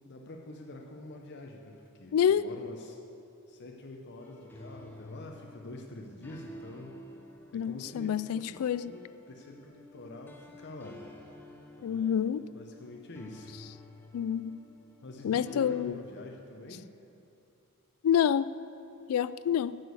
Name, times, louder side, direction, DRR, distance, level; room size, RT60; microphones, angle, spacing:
voice 1, 0.0-3.0 3.5-7.0 7.5-11.1 11.8-12.2 12.5-13.5 15.0-16.9, left 2 dB, 50° left, 2 dB, 0.7 m, -46 dB
voice 2, 2.1-2.5 7.5-8.9 11.8-12.5 14.1-14.6 15.2-16.0 18.0-18.5 19.1-19.8, left 9 dB, 70° left, 16 dB, 0.3 m, -27 dB
sound 1, 4.2-15.8, left 1 dB, 10° left, 0.8 m, -51 dB
9.4 x 6.1 x 8.2 m, 2.7 s
head